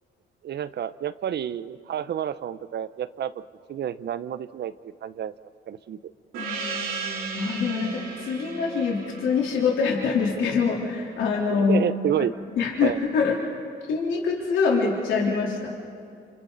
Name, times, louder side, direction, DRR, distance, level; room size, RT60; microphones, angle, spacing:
voice 1, 0.4-3.3 3.7-5.3 5.7-6.0 11.5-12.3 12.8-13.0, right 10 dB, 60° right, 14 dB, 0.7 m, -29 dB
Gong, 6.3-11.3, right 4 dB, 85° right, 4.3 m, -35 dB
voice 2, 7.3-11.8 12.6-13.4 13.9-15.7, left 5 dB, 80° left, -3 dB, 3.5 m, -24 dB
30.0 x 27.5 x 4.0 m, 2.3 s
cardioid pair, 90°, 20 cm